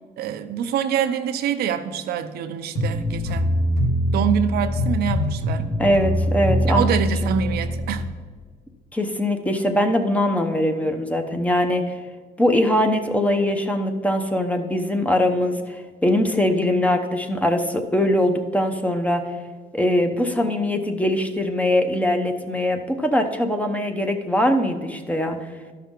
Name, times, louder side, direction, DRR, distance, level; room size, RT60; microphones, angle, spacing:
voice 1, 0.2-3.5 4.1-5.6 6.7-8.0, right 9 dB, 70° right, 9 dB, 0.6 m, -25 dB
sound 1, 2.7-8.1, equal, 45° left, 2.8 m, -23 dB
voice 2, 5.8-7.0 8.9-11.9 12.4-19.2 19.7-25.4, left 1 dB, 10° left, 6 dB, 0.8 m, -22 dB
12.5 x 5.7 x 3.7 m, 1.5 s
cardioid pair, 110°, 17 cm